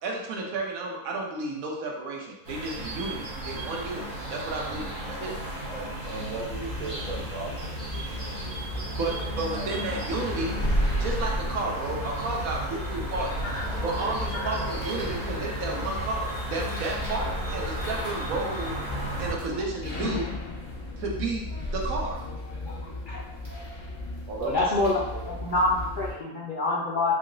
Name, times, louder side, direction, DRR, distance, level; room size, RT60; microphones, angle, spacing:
voice 1, 0.0-5.3 8.2-10.6 10.9-13.3 13.8-18.8 19.2-20.3 21.0-21.5 21.7-22.2, right 3 dB, 70° right, -1 dB, 1.1 m, -32 dB
sound 1, 2.4-19.3, right 1 dB, 30° right, 1.0 m, -35 dB
voice 2, 5.7-8.9 9.2-9.6 24.3-25.6 26.1-26.3 26.9-27.1, right 3 dB, 90° right, 0 dB, 1.2 m, -38 dB
sound 2, 6.4-26.1, left 1 dB, 30° left, 1.2 m, -34 dB
sound 3, 12.7-17.0, left 1 dB, 55° left, 0.9 m, -39 dB
voice 3, 24.4-27.1, left 2 dB, 85° left, -4 dB, 0.4 m, -26 dB
3.8 x 2.1 x 3.7 m, 0.90 s
omnidirectional pair, 1.6 m